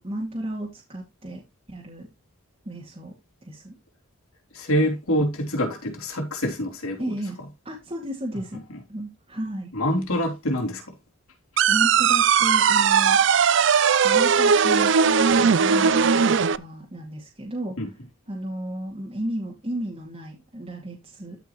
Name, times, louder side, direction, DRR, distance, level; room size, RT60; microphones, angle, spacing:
voice 1, 0.0-1.4 1.7-2.1 2.6-3.1 3.4-3.8 4.8-5.0 7.0-7.4 7.6-8.6 8.9-9.7 11.7-13.4 14.0-14.9 15.4-16.1 16.4-17.8 18.3-21.4, right 1 dB, 25° right, 2.4 m, -33 dB
voice 2, 4.5-7.1 9.7-10.9 17.8-17.9, equal, 85° left, 3.6 m, -25 dB
sound 1, 11.6-16.6, right 6 dB, 55° right, 0.5 m, -18 dB
13.5 x 5.6 x 3.1 m
head